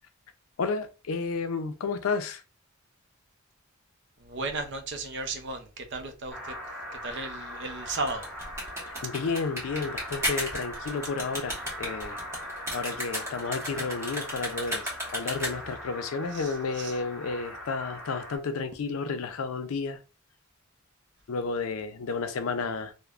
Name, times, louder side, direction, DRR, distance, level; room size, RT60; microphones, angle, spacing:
voice 1, 0.6-2.4 7.0-7.2 8.8-12.2 12.7-20.0 21.3-22.9, left 4 dB, 80° left, 0.5 m, -32 dB
voice 2, 4.2-6.5 7.0-8.3 16.3-16.5 16.8-16.9, right 3 dB, 60° right, 0.5 m, -34 dB
sound 1, 6.3-18.4, equal, ahead, 0.7 m, -41 dB
sound 2, 7.9-15.8, equal, 15° right, 1.0 m, -34 dB
3.2 x 2.1 x 2.4 m
head